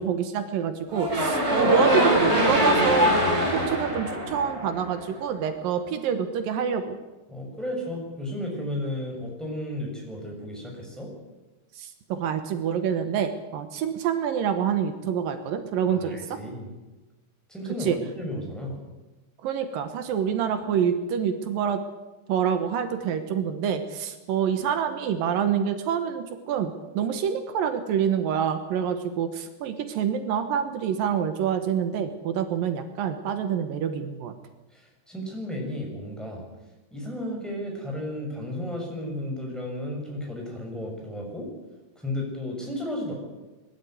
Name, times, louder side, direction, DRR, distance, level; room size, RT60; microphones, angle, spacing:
voice 1, 0.0-3.2 3.4-7.0 11.8-16.4 17.8-18.0 19.4-21.8 22.3-34.3, right 8 dB, 80° right, 8 dB, 3.0 m, -27 dB
sound 1, 0.9-5.1, equal, 20° right, 4.5 m, -23 dB
voice 2, 7.3-11.1 15.9-16.7 17.5-18.8 34.7-36.4 36.9-41.5 42.0-43.1, left 1 dB, ahead, -1 dB, 6.5 m, -33 dB
21.5 x 13.0 x 9.4 m, 1.1 s
omnidirectional pair, 3.9 m